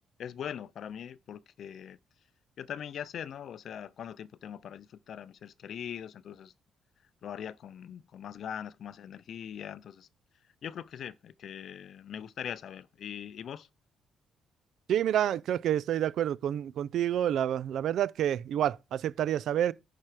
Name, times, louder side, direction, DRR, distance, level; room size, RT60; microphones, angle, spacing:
voice 1, 0.2-2.0 2.6-6.5 7.2-10.1 10.6-13.7, left 9 dB, 65° left, 0.5 m, -41 dB
voice 2, 14.9-19.7, right 10 dB, 75° right, 0.4 m, -28 dB
10.5 x 4.5 x 4.8 m
cardioid pair, 90°, 0 cm